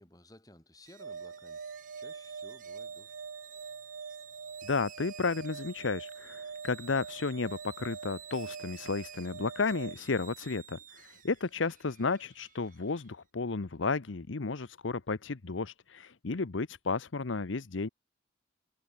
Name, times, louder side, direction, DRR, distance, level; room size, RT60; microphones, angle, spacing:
voice 1, 0.0-1.6 2.0-3.2, left 1 dB, 20° left, 5.5 m, -56 dB
sound 1, 0.9-13.1, right 9 dB, 45° right, 3.7 m, -52 dB
sound 2, 1.0-10.0, right 5 dB, 90° right, 0.7 m, -45 dB
voice 2, 4.6-17.9, left 4 dB, 80° left, 0.9 m, -33 dB
head